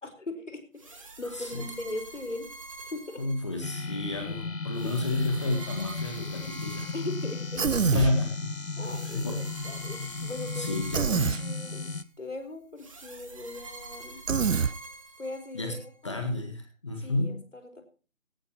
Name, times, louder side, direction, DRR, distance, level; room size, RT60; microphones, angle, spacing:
voice 1, 0.0-2.5 2.8-3.2 4.8-4.9 6.9-7.6 7.9-8.1 8.8-10.7 11.4-14.2 15.2-16.2 17.0-17.8, left 2 dB, 65° left, 7 dB, 4.7 m, -39 dB
sound 1, 0.8-3.9 4.7-7.8 8.8-12.0 12.8-15.9, right 2 dB, 25° right, 2.2 m, -46 dB
voice 2, 1.3-1.6 3.2-6.9 7.9-8.5 9.1-9.4 10.5-11.5 15.5-15.7 16.0-17.4, left 2 dB, 20° left, 3 dB, 1.7 m, -31 dB
sound 2, 3.6-12.0, left 3 dB, 80° left, 1.2 m, -35 dB
Human voice, 7.6-8.1 10.9-11.4 14.3-14.7, right 6 dB, 70° right, 0.6 m, -25 dB
18.0 x 13.5 x 3.0 m, 0.35 s
figure-of-eight pair, 165°, 40 cm